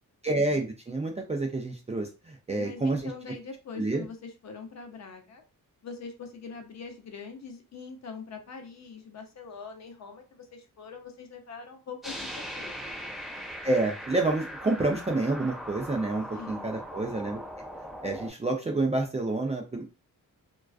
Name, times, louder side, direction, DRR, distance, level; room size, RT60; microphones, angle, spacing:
voice 1, 0.2-3.1 3.8-4.0 13.6-17.4 18.0-19.9, right 2 dB, 20° right, 1 dB, 0.3 m, -28 dB
voice 2, 2.6-5.4 5.8-12.7 16.3-16.7, left 5 dB, 50° left, 4 dB, 0.6 m, -43 dB
sound 1, 12.0-18.3, equal, ahead, 0.9 m, -40 dB
2.3 x 2.3 x 2.3 m, 0.31 s
wide cardioid pair, 115°, 34 cm